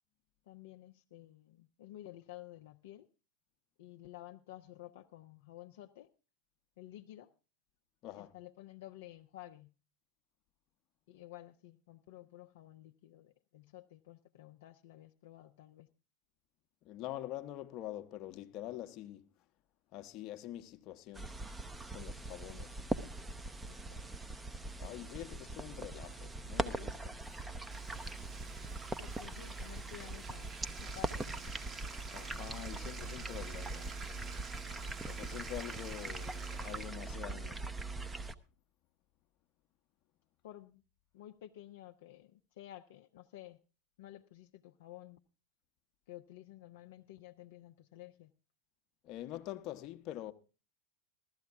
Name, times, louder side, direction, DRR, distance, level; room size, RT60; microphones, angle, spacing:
voice 1, 0.5-3.1 3.8-6.1 6.8-7.3 8.1-9.7 11.1-15.9 23.7-24.0 24.8-25.2 29.0-31.5 40.4-40.8 41.1-43.6 44.0-45.2 46.1-48.3, left 14 dB, 70° left, 0.5 m, -53 dB
voice 2, 8.0-8.3 16.8-19.2 19.9-21.3 21.9-22.8 24.8-27.2 32.1-34.0 35.1-37.6 49.0-50.3, left 13 dB, 50° left, 0.8 m, -45 dB
sound 1, 21.2-38.3, right 2 dB, 10° right, 0.7 m, -41 dB
Bathtub (filling or washing), 27.2-37.2, right 5 dB, 30° right, 1.1 m, -51 dB
Drum kit / Drum, 31.1-38.2, right 4 dB, 55° right, 2.3 m, -66 dB
15.0 x 13.0 x 3.5 m
hypercardioid pair, 90°, 0 cm